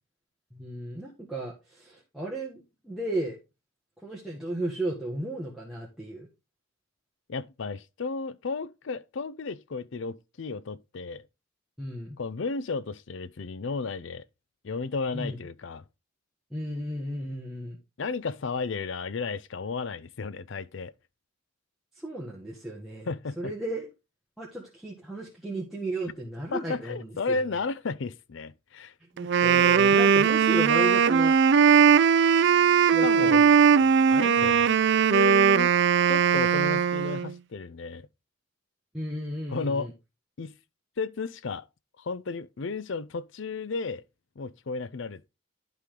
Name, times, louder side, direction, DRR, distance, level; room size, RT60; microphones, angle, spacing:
voice 1, 0.5-3.4 4.0-6.3 11.8-12.2 15.1-15.4 16.5-17.8 21.9-23.9 24.4-27.4 29.1-31.4 32.8-33.5 33.8-34.0 34.4-34.7 38.9-39.9, right 1 dB, ahead, 1.6 m, -34 dB
voice 2, 7.3-11.2 12.2-14.2 14.6-15.8 18.0-20.9 23.1-23.5 26.5-28.9 33.0-33.4 34.1-34.7 35.1-35.7 36.1-38.1 39.5-39.9 40.4-40.5 41.0-41.7 42.0-44.0 44.4-45.3, left 4 dB, 60° left, 0.5 m, -33 dB
Wind instrument woodwind instrument, 29.2-37.3, right 7 dB, 55° right, 0.4 m, -20 dB
11.5 x 5.0 x 3.7 m
head